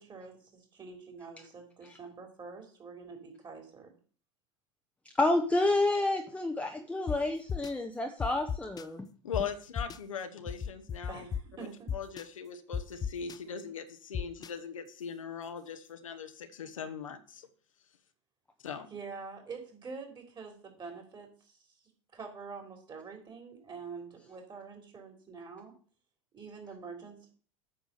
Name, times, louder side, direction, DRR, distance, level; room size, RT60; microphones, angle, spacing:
voice 1, 0.0-3.9 11.1-11.9 18.9-21.6 22.1-25.7 26.3-27.3, right 5 dB, 25° right, 3 dB, 3.8 m, -46 dB
voice 2, 5.2-9.1, left 2 dB, 10° left, 5 dB, 1.0 m, -29 dB
sound 1, 7.1-7.2 7.5-7.7 8.2-8.8 9.3-9.4 9.8-10.0 10.5-11.4 11.9-12.2 12.7-13.4 14.1-14.5, left 7 dB, 25° left, 0.5 m, -34 dB
voice 3, 9.2-11.3 11.6-11.7 11.9-17.5 18.6-18.9, left 6 dB, 85° left, 7 dB, 1.1 m, -40 dB
8.6 x 4.9 x 6.8 m, 0.42 s
hypercardioid pair, 80°, 17 cm